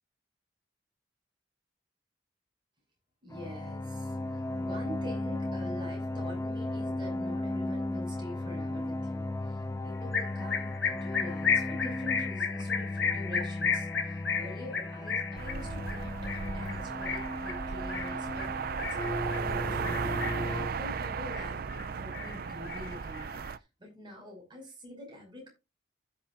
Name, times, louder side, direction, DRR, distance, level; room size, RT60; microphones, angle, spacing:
voice 1, 3.2-4.2 4.6-9.6 9.8-23.4 23.8-25.5, left 1 dB, 25° right, 0 dB, 5.9 m, -46 dB
sound 1, 3.3-20.7, left 2 dB, 15° left, 0.5 m, -36 dB
sound 2, 10.1-19.5 19.8-20.6 20.9-21.9 22.1-23.5, left 6 dB, 70° left, 1.9 m, -33 dB
sound 3, 15.4-23.6, right 6 dB, 55° right, 0.5 m, -36 dB
15.5 x 7.3 x 2.5 m, 0.25 s
head